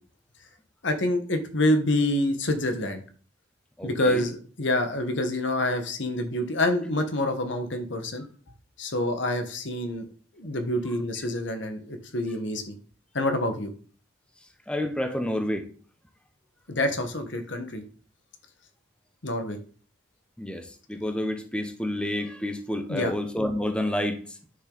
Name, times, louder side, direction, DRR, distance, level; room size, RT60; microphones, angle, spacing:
voice 1, 0.8-3.0 3.8-8.2 8.8-10.1 10.3-12.7 13.1-13.7 16.7-17.8 19.2-19.6 22.9-23.1, left 1 dB, 70° left, 7 dB, 1.3 m, -27 dB
voice 2, 3.8-4.3 14.7-15.7 20.4-24.2, left 1 dB, 5° left, 6 dB, 0.8 m, -29 dB
9.2 x 6.8 x 4.0 m, 0.43 s
head